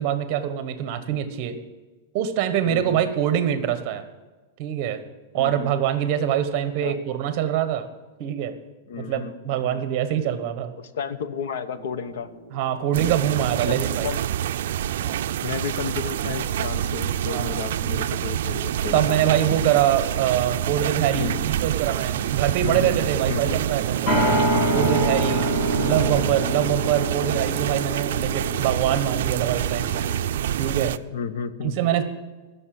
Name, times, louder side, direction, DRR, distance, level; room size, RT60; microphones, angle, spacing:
voice 1, 0.0-1.5 2.1-4.0 4.6-5.0 5.3-7.9 8.2-8.5 9.0-10.7 12.5-14.1 14.9-15.3 17.2-17.6 18.9-25.5 25.8-30.0 30.6-31.0 31.6-32.0, right 10 dB, 35° right, 10 dB, 1.2 m, -24 dB
voice 2, 2.6-3.0 5.4-5.7 6.8-7.0 8.9-9.8 10.8-12.3 13.7-14.2 15.4-19.5 21.1-21.4 22.6-23.0 23.3-23.6 24.4-24.8 25.1-25.2 25.8-26.1 31.1-31.7, left 7 dB, 70° left, 13 dB, 0.9 m, -32 dB
sound 1, 11.8-15.6 15.8-15.9 24.1-30.3, right 1 dB, 20° left, 1.9 m, -27 dB
sound 2, 12.9-31.0, right 11 dB, 65° right, 0.4 m, -27 dB
15.5 x 6.8 x 7.7 m, 1.2 s
supercardioid pair, 175°, 0 cm